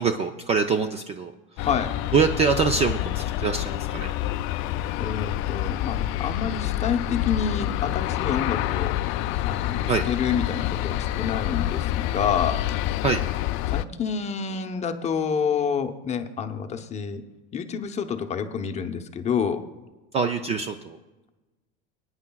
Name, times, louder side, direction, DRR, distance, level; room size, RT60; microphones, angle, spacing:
voice 1, 0.0-1.7 2.1-4.1 9.9-10.1 13.0-13.2 20.1-21.0, right 5 dB, 20° right, 8 dB, 0.4 m, -24 dB
Aircraft, 1.6-13.8, left 14 dB, 45° left, 0.4 m, -27 dB
voice 2, 1.6-2.0 5.0-8.9 9.4-12.6 13.7-17.2 17.5-19.7, left 7 dB, 25° left, 6 dB, 0.8 m, -28 dB
23.5 x 9.6 x 2.3 m, 1.1 s
supercardioid pair, 140°, 29 cm